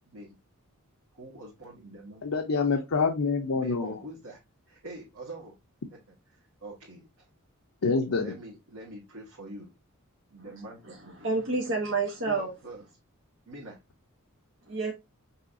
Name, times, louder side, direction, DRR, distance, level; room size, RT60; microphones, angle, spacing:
voice 1, 0.1-0.4 1.1-2.2 3.5-4.4 4.7-5.5 5.9-6.0 6.3-7.1 8.2-9.7 10.3-11.2 12.3-12.8 13.4-13.8, right 1 dB, 80° right, 1.6 m, -44 dB
voice 2, 2.2-4.0 7.8-8.3, left 4 dB, 75° left, 0.6 m, -26 dB
voice 3, 11.2-12.5 14.7-14.9, right 3 dB, 55° right, 0.9 m, -28 dB
5.6 x 3.1 x 2.6 m
head